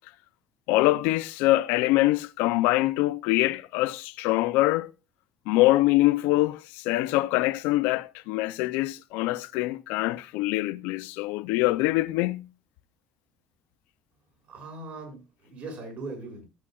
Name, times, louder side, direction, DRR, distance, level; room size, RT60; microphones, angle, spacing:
voice 1, 0.7-4.9 5.5-12.5, left 18 dB, 85° left, 0.5 m, -24 dB
voice 2, 14.5-16.4, right 3 dB, 50° right, 6.2 m, -39 dB
14.5 x 8.4 x 2.4 m
cardioid pair, 135°, 3 cm